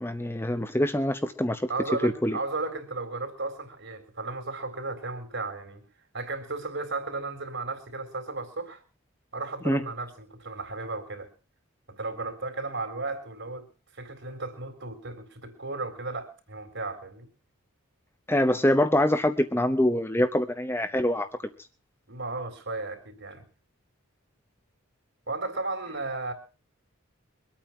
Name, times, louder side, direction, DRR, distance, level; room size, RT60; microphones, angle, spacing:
voice 1, 0.0-1.6 2.0-2.4 9.7-9.8 18.3-21.3, left 1 dB, 10° left, 8 dB, 0.8 m, -24 dB
voice 2, 1.7-5.8 6.1-8.8 9.3-11.3 11.9-13.7 13.9-17.3 22.1-23.4 25.3-26.3, right 3 dB, 55° right, 7 dB, 3.8 m, -34 dB
23.5 x 8.9 x 6.0 m, 0.36 s
head